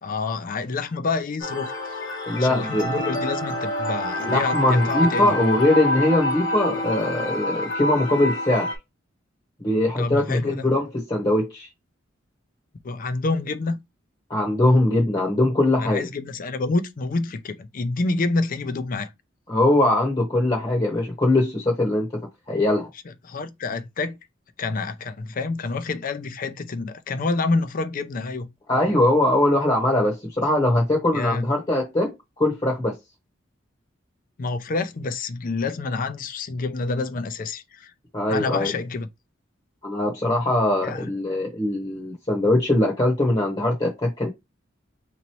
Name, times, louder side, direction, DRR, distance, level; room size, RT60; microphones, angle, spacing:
voice 1, 0.0-1.9 2.4-5.4 10.0-10.7 12.8-13.8 15.8-19.1 23.2-24.2 24.6-28.5 31.1-31.5 34.4-37.9 38.3-39.1 40.8-41.1, left 3 dB, 45° left, 0.4 m, -28 dB
sound 1, 1.4-8.8, left 1 dB, 70° left, 1.2 m, -27 dB
voice 2, 2.3-2.9 4.2-8.7 9.6-11.7 14.3-16.1 19.5-22.2 22.5-22.9 28.7-33.0 38.1-38.7 39.8-44.3, left 1 dB, 25° left, 1.0 m, -21 dB
3.8 x 3.0 x 3.0 m
head